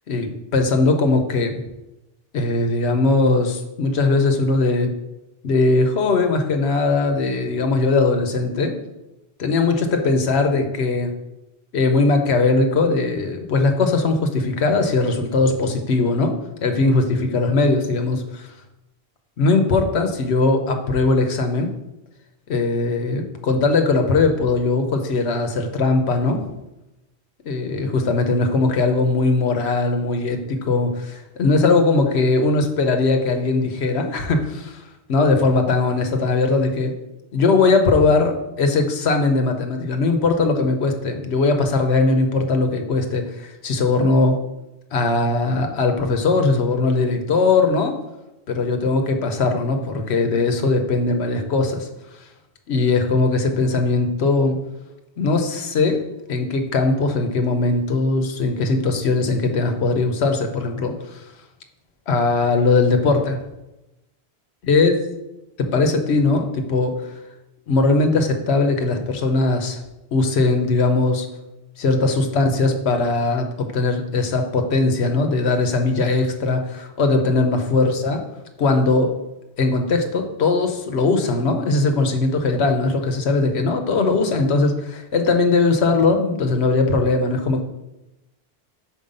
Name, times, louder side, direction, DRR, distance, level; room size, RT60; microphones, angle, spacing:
voice 1, 0.1-1.6 2.3-4.9 5.4-8.7 9.4-11.1 11.7-16.3 16.6-18.5 19.4-21.7 22.5-26.5 27.4-34.8 35.1-36.9 37.3-44.4 44.9-48.0 48.5-51.9 52.7-54.6 55.2-56.0 56.3-61.2 62.1-63.4 64.6-64.9 65.6-67.1 67.7-69.8 70.1-71.3 71.8-78.2 78.6-79.2 79.6-87.6, left 3 dB, 80° left, 6 dB, 1.1 m, -20 dB
5.5 x 4.6 x 5.2 m, 0.95 s
omnidirectional pair, 1.1 m